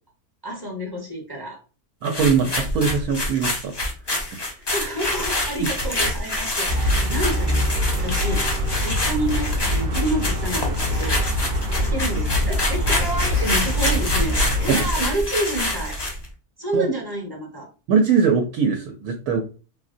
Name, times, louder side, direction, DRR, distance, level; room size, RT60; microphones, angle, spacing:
voice 1, 0.4-1.6 4.5-16.0 16.6-17.7, right 1 dB, 20° right, -1 dB, 0.7 m, -29 dB
sound 1, 2.0-16.2, left 1 dB, 45° left, 0.3 m, -26 dB
voice 2, 2.0-3.7 14.7-14.9 16.7-16.9 17.9-19.4, right 6 dB, 80° right, 3 dB, 1.1 m, -21 dB
sound 2, 6.7-14.7, left 1 dB, 55° right, 0.7 m, -24 dB
3.6 x 2.1 x 2.5 m, 0.35 s
omnidirectional pair, 1.6 m